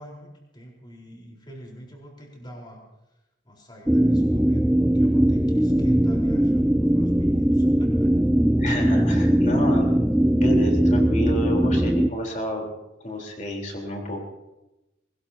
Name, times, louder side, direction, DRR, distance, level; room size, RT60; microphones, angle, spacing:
voice 1, 0.0-2.8 3.1-3.2 3.4-8.1, equal, 25° left, -2 dB, 4.4 m, -45 dB
sound 1, 3.9-12.1, right 1 dB, 5° right, 0.4 m, -20 dB
voice 2, 8.6-9.9 10.3-12.7 13.0-14.2, equal, 40° left, 0 dB, 4.0 m, -29 dB
23.0 x 20.0 x 2.9 m, 0.97 s
head